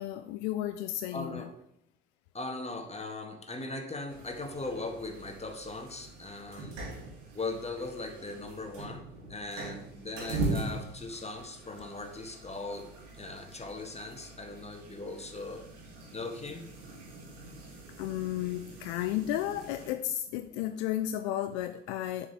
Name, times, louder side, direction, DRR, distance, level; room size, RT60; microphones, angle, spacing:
voice 1, 0.0-1.5 18.0-22.3, left 12 dB, 65° left, 10 dB, 0.6 m, -33 dB
voice 2, 1.1-1.6 2.3-6.8 7.3-15.6 16.1-16.7, left 2 dB, 15° left, 4 dB, 1.7 m, -39 dB
sound 1, 4.1-19.9, right 2 dB, 70° right, 2.1 m, -41 dB
7.3 x 5.3 x 7.4 m, 0.76 s
figure-of-eight pair, 45°, 37 cm